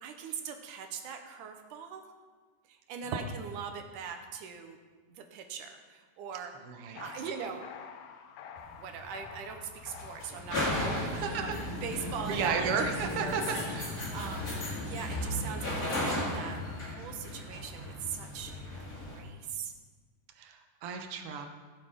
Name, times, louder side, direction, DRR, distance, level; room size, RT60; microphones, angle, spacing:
voice 1, 0.0-2.0 2.6-4.8 5.1-6.6 7.0-7.7 8.7-11.5 11.8-12.9 13.2-13.6 14.1-14.6 14.8-18.6 19.0-19.7, right 7 dB, 80° right, 5 dB, 2.5 m, -41 dB
voice 2, 6.6-7.0 11.1-11.6 12.3-13.4 13.7-13.9 20.4-21.5, right 6 dB, 60° right, 5 dB, 1.6 m, -33 dB
sound 1, 7.0-15.6, left 7 dB, 75° left, 1.7 m, -50 dB
sound 2, 8.6-19.2, left 1 dB, 30° left, 2.1 m, -35 dB
15.5 x 6.9 x 5.1 m, 1.4 s
omnidirectional pair, 3.6 m